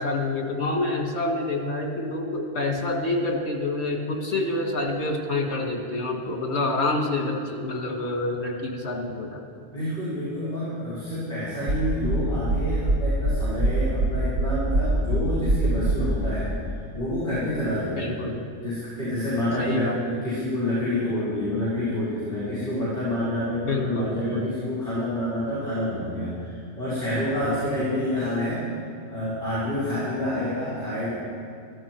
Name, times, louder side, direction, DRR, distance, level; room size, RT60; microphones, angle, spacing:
voice 1, 0.0-9.4 18.0-18.4 19.6-20.0 23.6-24.5 27.4-27.6, left 2 dB, 70° left, 2 dB, 2.0 m, -27 dB
voice 2, 9.7-16.5 16.9-18.1 18.6-28.6 29.1-31.1, left 1 dB, 40° left, -10 dB, 4.6 m, -28 dB
sound 1, 11.7-16.1, right 2 dB, 75° right, 1.6 m, -23 dB
15.0 x 14.0 x 4.5 m, 2.3 s
omnidirectional pair, 1.2 m